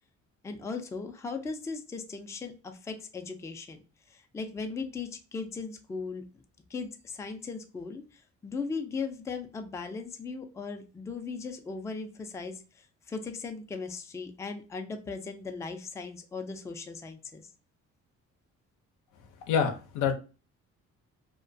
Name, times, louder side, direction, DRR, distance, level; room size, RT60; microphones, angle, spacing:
voice 1, 0.4-3.8 4.1-6.2 6.7-17.5, left 4 dB, 10° left, 6 dB, 0.3 m, -38 dB
voice 2, 19.5-20.1, left 7 dB, 85° left, 6 dB, 0.6 m, -26 dB
2.2 x 2.2 x 2.5 m, 0.33 s
cardioid pair, 90°, 30 cm